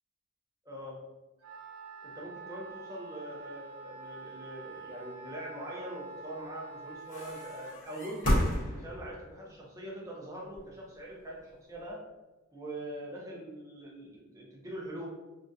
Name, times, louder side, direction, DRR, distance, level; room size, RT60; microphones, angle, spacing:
voice 1, 0.6-1.0 2.0-12.0 12.5-15.1, right 1 dB, 15° right, -3 dB, 0.4 m, -43 dB
Wind instrument woodwind instrument, 1.4-7.8, right 3 dB, 80° right, 0.4 m, -47 dB
sound 1, 7.1-9.3 10.4-11.9, left 1 dB, 40° left, 0.8 m, -31 dB
2.3 x 2.1 x 2.5 m, 1.1 s
head